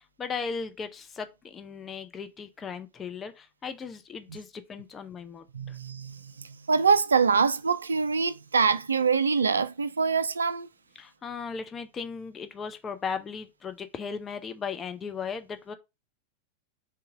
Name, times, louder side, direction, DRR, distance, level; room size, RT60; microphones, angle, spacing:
voice 1, 0.2-5.8 11.0-15.7, left 5 dB, 20° left, 0.6 m, -37 dB
voice 2, 5.5-10.7, right 5 dB, 75° right, 0.3 m, -25 dB
3.8 x 2.8 x 4.7 m
figure-of-eight pair, 90°, 0 cm